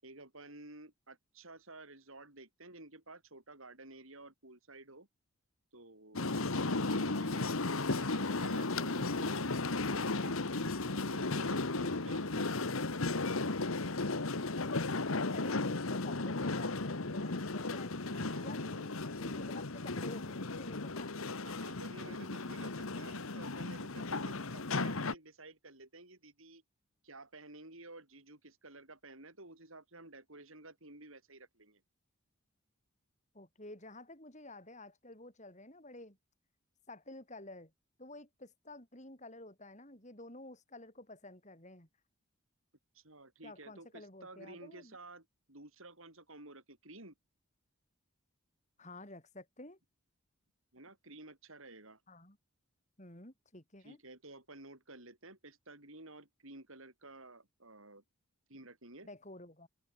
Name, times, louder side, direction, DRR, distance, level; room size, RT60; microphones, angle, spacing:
voice 1, 0.0-5.1 5.7-7.5 7.9-12.7 18.1-19.0 21.4-26.6 27.0-31.8 42.9-47.1 50.7-52.0 53.8-58.0 58.5-59.1, right 2 dB, 70° right, 8.0 m, -53 dB
sound 1, 6.2-25.1, left 3 dB, 75° left, 1.5 m, -35 dB
voice 2, 14.6-17.9 18.4-18.7 18.9-21.1 33.3-36.2 36.9-37.7 38.0-41.9 43.4-45.0 48.8-49.8 52.1-52.4 53.0-54.0 59.0-59.7, left 2 dB, 35° left, 5.7 m, -51 dB
open air
head